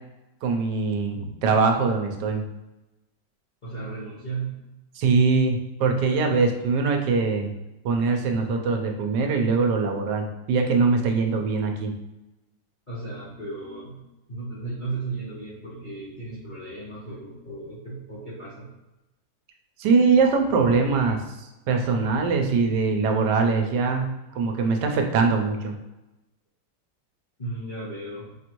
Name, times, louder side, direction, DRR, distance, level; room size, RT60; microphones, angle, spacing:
voice 1, 0.4-2.5 4.9-7.5 7.8-11.9 19.8-25.7, right 4 dB, 80° right, 3 dB, 1.2 m, -22 dB
voice 2, 3.6-4.6 12.9-18.7 27.4-28.4, right 3 dB, 35° left, -10 dB, 0.9 m, -35 dB
4.6 x 2.5 x 2.9 m, 0.99 s
omnidirectional pair, 1.9 m